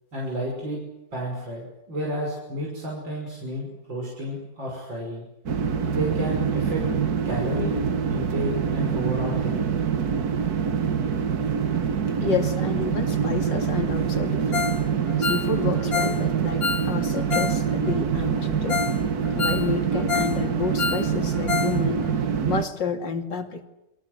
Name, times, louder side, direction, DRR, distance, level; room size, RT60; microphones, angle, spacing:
voice 1, 0.1-0.8 1.1-5.2 5.9-6.8 7.2-7.8 8.1-9.6, equal, 90° right, -2 dB, 6.8 m, -31 dB
sound 1, 5.5-22.6, right 7 dB, 55° right, 1.8 m, -25 dB
voice 2, 12.2-14.7 15.2-18.8 19.3-23.7, left 5 dB, 75° left, 5 dB, 3.3 m, -30 dB
Ringtone, 14.5-14.8 15.1-17.6 17.9-18.0 18.4-18.5 18.7-19.0 19.2-20.4 20.6-21.8 22.0-22.1 22.6-22.7, left 5 dB, 55° left, 2.0 m, -28 dB
29.0 x 22.5 x 7.8 m, 0.91 s
omnidirectional pair, 2.0 m